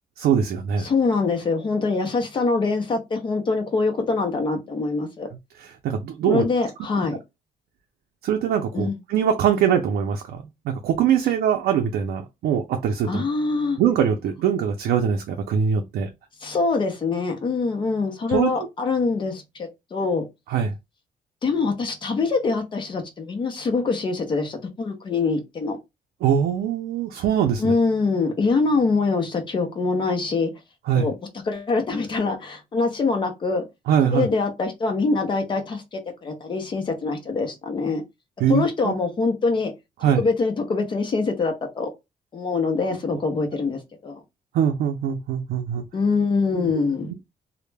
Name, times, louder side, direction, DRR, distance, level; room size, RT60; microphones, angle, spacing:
voice 1, 0.2-0.9 5.6-6.5 7.0-7.1 8.2-13.2 13.8-16.1 18.3-18.5 20.5-20.7 26.2-27.7 30.9-31.1 33.9-34.3 38.4-38.9 40.0-40.2 44.5-45.8 46.5-46.7 47.0-47.2, right 8 dB, 90° right, 0.4 m, -22 dB
voice 2, 0.8-5.3 6.3-7.2 8.7-9.0 9.6-9.7 13.1-13.8 16.4-20.2 21.4-25.8 27.6-30.5 30.9-31.1 31.4-33.6 34.0-38.0 38.5-39.7 40.2-41.9 42.3-44.2 45.9-47.1, left 4 dB, 30° left, 0.5 m, -24 dB
2.1 x 2.0 x 3.1 m
cardioid pair, 175°, 16 cm